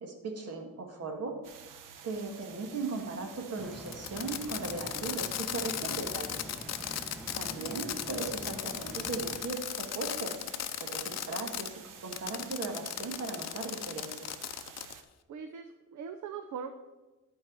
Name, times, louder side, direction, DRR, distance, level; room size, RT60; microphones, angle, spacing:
voice 1, 0.0-1.4 2.0-6.3 7.3-10.4 10.8-14.1, right 3 dB, 50° right, 3 dB, 1.9 m, -38 dB
sound 1, 1.4-15.0, right 7 dB, 85° right, 1.0 m, -51 dB
sound 2, 3.6-9.4, equal, ahead, 0.7 m, -46 dB
Fireworks, 3.9-11.7 12.1-15.0, left 11 dB, 55° left, 0.6 m, -37 dB
voice 2, 7.3-7.8 15.3-16.7, right 6 dB, 65° right, 8 dB, 0.7 m, -42 dB
11.0 x 4.7 x 6.1 m, 1.2 s
cardioid pair, 140°, 31 cm